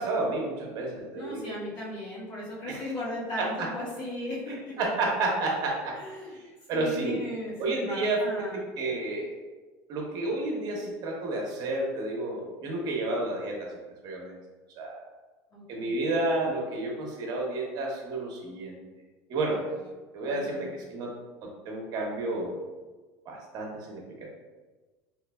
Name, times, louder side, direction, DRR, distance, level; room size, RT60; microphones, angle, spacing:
voice 1, 0.0-1.5 2.7-2.8 3.4-3.7 4.8-6.0 6.7-7.2 7.6-9.3 9.9-13.7 14.0-14.4 14.8-15.0 15.7-18.8 19.3-19.6 20.1-21.1 21.4-22.6 23.3-24.3, right 2 dB, 50° right, -1 dB, 0.9 m, -31 dB
voice 2, 1.1-4.8 5.9-6.4 6.7-8.6 15.5-15.9 19.5-19.7 20.2-20.7, left 1 dB, 60° left, -10 dB, 1.5 m, -37 dB
3.8 x 3.0 x 2.2 m, 1.3 s
supercardioid pair, 115°, 8 cm